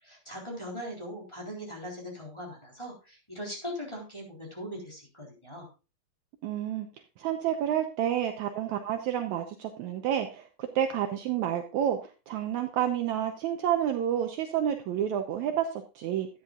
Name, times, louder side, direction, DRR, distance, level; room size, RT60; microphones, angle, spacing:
voice 1, 0.0-5.7, equal, 5° left, -2 dB, 3.4 m, -40 dB
voice 2, 6.4-6.9 7.2-16.3, right 10 dB, 85° right, 6 dB, 1.6 m, -29 dB
13.0 x 9.5 x 2.4 m, 0.30 s
omnidirectional pair, 4.4 m